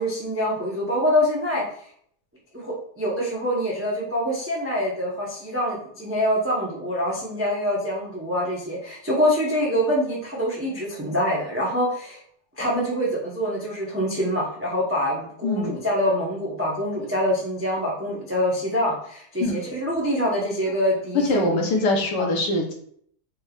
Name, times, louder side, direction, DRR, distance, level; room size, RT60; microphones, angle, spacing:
voice 1, 0.0-1.6 2.5-12.2 12.6-21.5 22.2-22.3, equal, 20° right, -5 dB, 0.4 m, -25 dB
voice 2, 15.4-15.8 19.4-19.6 21.2-22.7, left 1 dB, 75° left, 2 dB, 1.4 m, -23 dB
4.1 x 3.4 x 2.3 m, 0.63 s
omnidirectional pair, 1.9 m